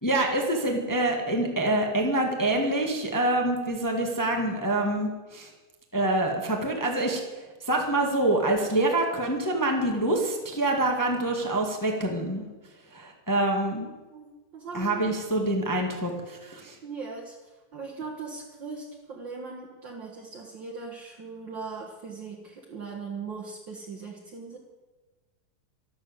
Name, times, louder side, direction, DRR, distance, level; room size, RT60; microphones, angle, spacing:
voice 1, 0.0-5.5 5.9-7.2 7.6-12.5 12.9-13.9 14.7-16.8, right 1 dB, 20° left, 1 dB, 0.5 m, -26 dB
voice 2, 14.1-15.0 16.8-17.4 17.7-24.6, right 4 dB, 50° right, -1 dB, 1.5 m, -39 dB
13.0 x 12.5 x 8.1 m, 1.2 s
omnidirectional pair, 4.1 m